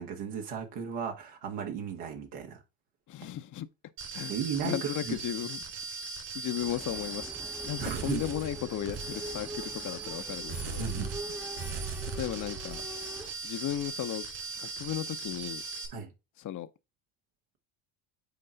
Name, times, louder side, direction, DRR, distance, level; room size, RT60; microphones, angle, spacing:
voice 1, 0.0-2.6 4.3-5.2 7.8-8.2 10.8-11.1 15.9-16.1, right 6 dB, 85° right, 1.9 m, -35 dB
voice 2, 3.1-3.7 4.1-4.3 4.6-5.6 6.3-10.8 12.0-12.8 13.4-14.2 14.6-15.6 16.4-16.7, left 11 dB, 40° left, 0.7 m, -35 dB
sound 1, 4.0-15.9, right 4 dB, 60° right, 4.2 m, -39 dB
sound 2, 6.6-13.3, right 1 dB, 5° right, 0.6 m, -44 dB
7.9 x 4.6 x 3.9 m
supercardioid pair, 75°, 48 cm